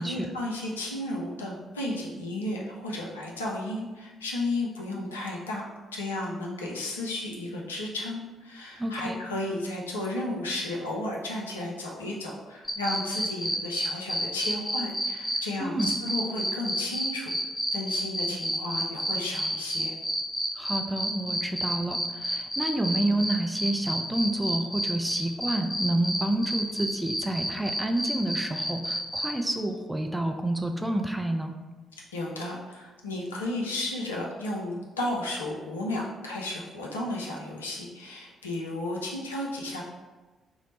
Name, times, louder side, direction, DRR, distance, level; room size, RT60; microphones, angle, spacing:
voice 1, 0.0-5.7 5.9-17.4 17.7-19.9 32.1-39.8, left 1 dB, 80° left, -3 dB, 0.4 m, -33 dB
voice 2, 8.8-9.2 15.6-16.0 20.6-31.5, right 1 dB, 10° right, 4 dB, 0.4 m, -29 dB
sound 1, 12.6-15.4 15.8-29.3, equal, 15° left, 0.9 m, -29 dB
3.0 x 2.0 x 4.0 m, 1.2 s
figure-of-eight pair, 40°, 0 cm